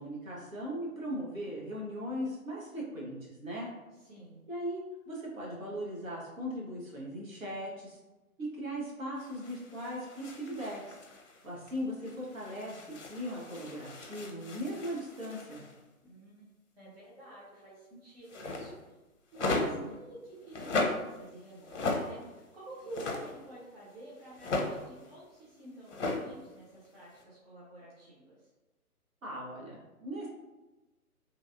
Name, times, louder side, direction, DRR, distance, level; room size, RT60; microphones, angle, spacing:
voice 1, 0.0-3.7 4.5-8.0 8.4-11.0 11.4-15.6 19.5-19.9 29.2-30.3, equal, 65° right, -4 dB, 1.2 m, -39 dB
voice 2, 4.0-4.4 16.0-16.5 16.8-18.7 19.3-28.5, right 1 dB, 40° right, -7 dB, 0.9 m, -49 dB
sound 1, 9.2-11.8 12.1-15.8 18.3-18.8 19.3-20.0 20.4-21.3 21.5-22.3 22.7-23.3 24.2-25.1 25.9-26.2 26.6-26.7 27.0-27.2, left 2 dB, 55° left, 0.6 m, -36 dB
3.1 x 2.5 x 2.5 m, 1.1 s
figure-of-eight pair, 140°, 44 cm